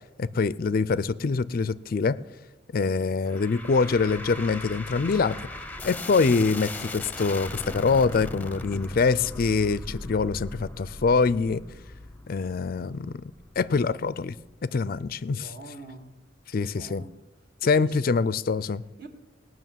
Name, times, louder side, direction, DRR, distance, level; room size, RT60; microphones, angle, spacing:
voice 1, 0.2-2.2 2.7-5.3 5.8-11.6 12.3-13.2 13.6-14.3 14.6-15.5 16.5-17.0 17.6-18.8, left 4 dB, 45° left, 0.4 m, -24 dB
sound 1, 3.2-14.5, left 2 dB, 10° left, 0.7 m, -39 dB
voice 2, 15.3-16.2 16.6-17.1 17.6-18.1 19.0-19.1, right 2 dB, 50° right, 1.7 m, -44 dB
18.5 x 6.4 x 9.1 m
head